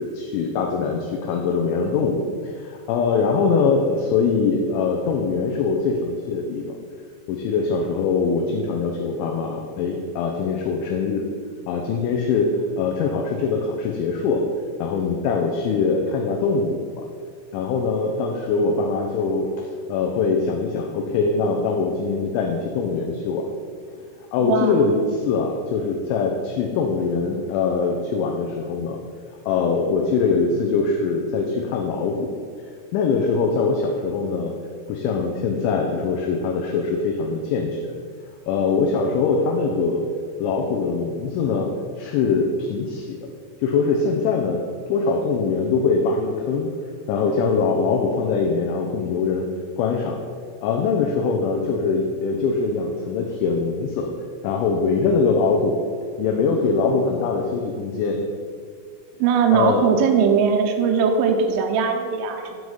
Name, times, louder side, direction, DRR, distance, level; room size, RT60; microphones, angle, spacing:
voice 1, 0.0-2.2 2.5-6.6 7.3-11.3 11.7-14.4 14.8-17.0 17.5-23.5 24.3-29.0 29.5-32.3 32.9-34.5 34.9-37.9 38.5-40.0 40.4-41.7 42.0-43.2 43.6-44.6 44.9-46.7 47.1-49.5 49.8-50.2 50.6-54.1 54.4-55.8 56.2-58.2 59.5-59.8, left 4 dB, 85° left, 2 dB, 2.7 m, -22 dB
voice 2, 24.4-24.8 59.2-62.6, right 6 dB, 80° right, 3 dB, 3.0 m, -20 dB
7.7 x 3.1 x 5.3 m, 2.1 s
omnidirectional pair, 5.6 m